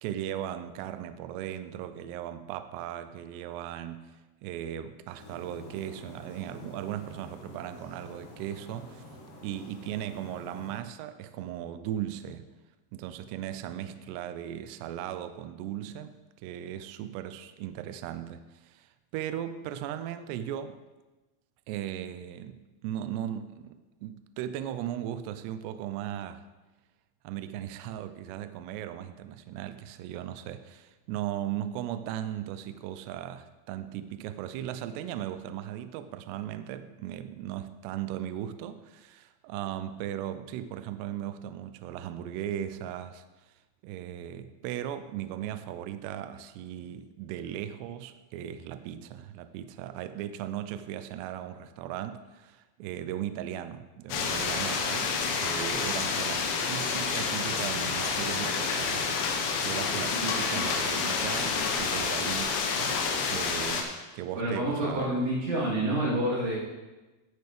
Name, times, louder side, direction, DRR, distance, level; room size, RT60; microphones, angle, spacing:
voice 1, 0.0-4.1 4.4-9.0 9.4-12.5 12.9-16.1 16.4-20.8 21.7-26.4 27.2-43.2 43.8-59.3 59.6-65.1, right 11 dB, 90° right, 10 dB, 2.4 m, -37 dB
sound 1, 5.2-10.8, left 1 dB, 60° left, 2.4 m, -48 dB
sound 2, 54.1-63.8, left 5 dB, 80° left, 3.4 m, -29 dB
voice 2, 64.4-66.6, right 1 dB, 60° right, -8 dB, 5.3 m, -28 dB
16.5 x 6.6 x 3.4 m, 1.1 s
omnidirectional pair, 5.4 m